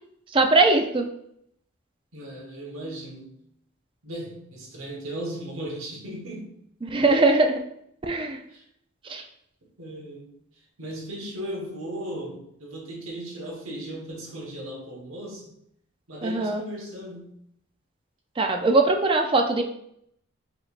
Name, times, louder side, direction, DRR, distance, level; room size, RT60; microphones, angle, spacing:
voice 1, 0.3-1.1 6.8-7.6 8.0-8.4 9.0-9.2 16.2-16.6 18.4-19.6, right 2 dB, 25° right, 4 dB, 0.4 m, -21 dB
voice 2, 2.1-3.4 4.0-6.5 8.5-8.6 9.8-10.3 10.8-15.6 16.1-17.3, right 1 dB, 90° right, -1 dB, 1.3 m, -36 dB
4.9 x 3.3 x 2.5 m, 0.72 s
head